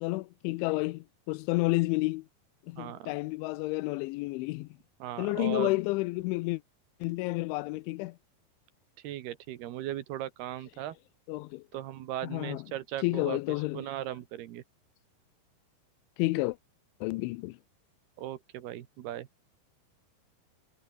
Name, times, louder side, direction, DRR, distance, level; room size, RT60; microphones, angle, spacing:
voice 1, 0.0-2.2 2.7-4.7 5.2-6.6 7.0-8.2 11.3-11.6 12.3-12.6 13.0-13.8 16.2-16.6 17.0-17.6, left 22 dB, 85° left, 2.9 m, -30 dB
voice 2, 2.8-3.1 5.0-5.7 9.0-11.0 11.7-14.6 18.2-19.3, right 13 dB, 65° right, 2.9 m, -38 dB
omnidirectional pair, 5.6 m